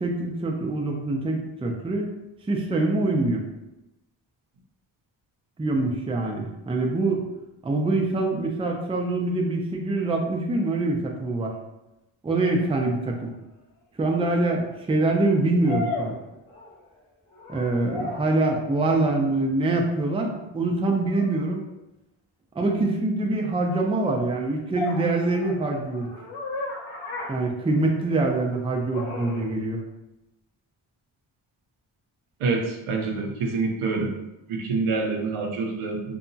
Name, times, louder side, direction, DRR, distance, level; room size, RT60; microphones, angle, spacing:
voice 1, 0.0-2.1 2.5-3.4 5.6-7.3 7.6-11.5 12.2-13.3 14.0-16.2 17.5-21.6 22.6-26.1 27.3-29.8, right 2 dB, 10° right, 1 dB, 0.4 m, -24 dB
sound 1, 13.3-13.4 15.6-16.9 17.3-18.4 21.0-21.3 24.7-28.2 28.9-29.5, left 2 dB, 85° left, 0.9 m, -35 dB
voice 2, 32.4-34.1 34.5-36.2, right 3 dB, 80° right, 1 dB, 0.7 m, -26 dB
2.8 x 2.3 x 2.6 m, 0.95 s
cardioid pair, 60°, 50 cm